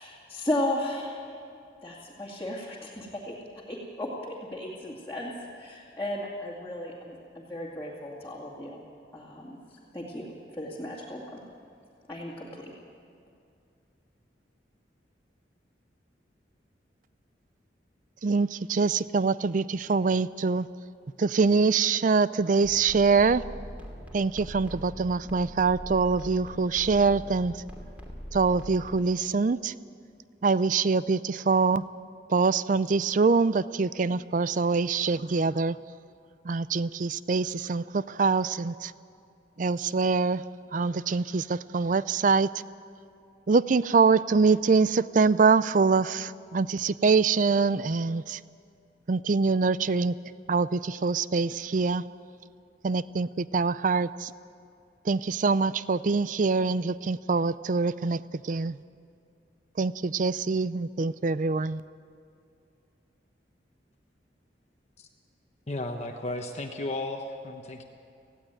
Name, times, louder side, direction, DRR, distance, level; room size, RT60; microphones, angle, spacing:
voice 1, 0.0-1.4 1.8-3.4 3.7-8.8 9.1-9.6 9.9-11.4 12.1-12.7, left 1 dB, 15° left, -6 dB, 2.3 m, -35 dB
voice 2, 18.2-20.7 21.2-23.4 24.1-27.6 28.3-29.7 30.4-31.8 32.3-35.8 36.4-38.9 39.6-40.4 40.7-42.5 43.5-48.4 49.1-50.2 50.5-52.0 52.8-54.3 55.0-58.8 59.8-61.8, right 4 dB, 45° right, 17 dB, 0.4 m, -24 dB
sound 1, 22.6-29.0, equal, 10° right, 2.7 m, -42 dB
voice 3, 65.7-67.8, left 2 dB, 35° left, 3 dB, 1.1 m, -34 dB
18.5 x 15.5 x 9.1 m, 2.5 s
head